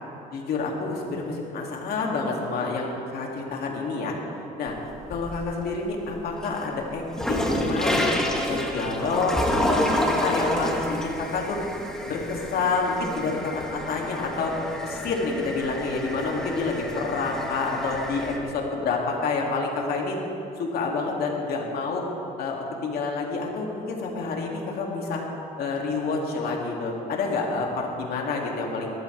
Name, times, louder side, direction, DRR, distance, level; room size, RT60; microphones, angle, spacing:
voice 1, 0.3-4.1 4.6-4.7 5.1-7.0 7.3-11.6 12.0-14.5 14.8-20.2 20.6-22.0 22.4-25.2 25.6-28.9, left 4 dB, 65° left, -1 dB, 2.7 m, -28 dB
sound 1, 4.7-5.6 6.0-18.4, left 1 dB, 5° left, 1.7 m, -29 dB
21.0 x 13.5 x 3.5 m, 2.8 s
cardioid pair, 110°, 17 cm